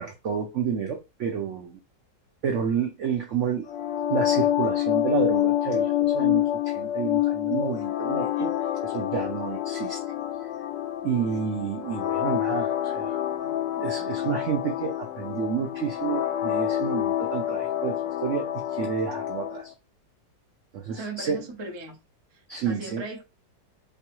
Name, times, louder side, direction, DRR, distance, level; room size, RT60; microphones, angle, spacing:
voice 1, 0.0-1.8 2.4-3.7 4.1-10.0 11.0-19.7 20.7-21.4 22.5-23.1, right 7 dB, 65° right, 0.7 m, -30 dB
sound 1, 3.7-19.6, left 12 dB, 85° left, 1.3 m, -27 dB
voice 2, 20.9-22.0 22.3-23.2, right 3 dB, 30° right, 0.5 m, -38 dB
3.5 x 3.1 x 2.9 m
omnidirectional pair, 1.9 m